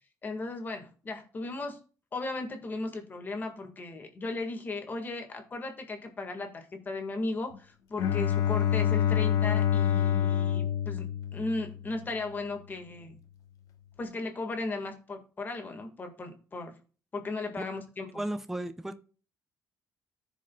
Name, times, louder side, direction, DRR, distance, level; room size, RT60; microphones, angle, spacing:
voice 1, 0.2-1.8 2.1-13.2 14.0-16.8 17.1-18.2, left 3 dB, 30° left, 4 dB, 1.7 m, -36 dB
Bowed string instrument, 8.0-11.9, left 9 dB, 65° left, 1.0 m, -27 dB
voice 2, 18.1-19.0, right 1 dB, 5° right, 8 dB, 0.7 m, -34 dB
14.5 x 5.1 x 2.3 m, 0.37 s
cardioid pair, 130°, 6 cm